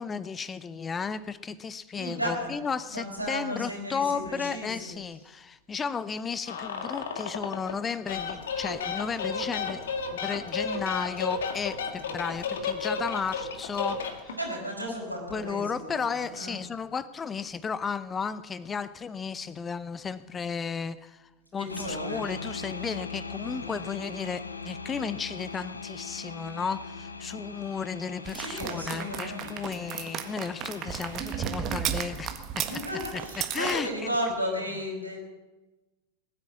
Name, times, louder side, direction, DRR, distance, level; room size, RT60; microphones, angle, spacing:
voice 1, 0.0-14.4 14.9-32.8 33.4-34.1, left 6 dB, 20° left, 17 dB, 0.6 m, -34 dB
voice 2, 1.9-2.5 2.9-4.9 14.4-16.6 21.6-22.3 28.3-30.0 32.6-35.2, equal, 90° right, -1 dB, 5.1 m, -34 dB
sound 1, 6.5-7.8 8.1-14.5, left 5 dB, 60° left, 1.8 m, -33 dB
sound 2, 21.7-31.4, left 4 dB, 80° left, 0.9 m, -40 dB
sound 3, 28.3-33.8, right 9 dB, 35° right, 1.5 m, -34 dB
20.5 x 9.7 x 7.3 m, 1.1 s
figure-of-eight pair, 90°, 0 cm